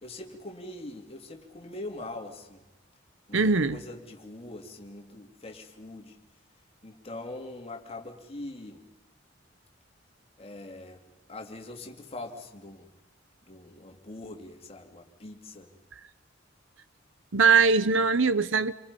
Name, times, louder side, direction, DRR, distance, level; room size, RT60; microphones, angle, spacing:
voice 1, 0.0-2.6 3.3-6.2 6.8-8.8 10.4-11.0 11.3-12.9 13.4-15.7, left 2 dB, 30° left, 2.8 m, -42 dB
voice 2, 3.3-3.8 17.3-18.7, right 4 dB, 75° right, 1.0 m, -21 dB
28.5 x 24.5 x 5.4 m
head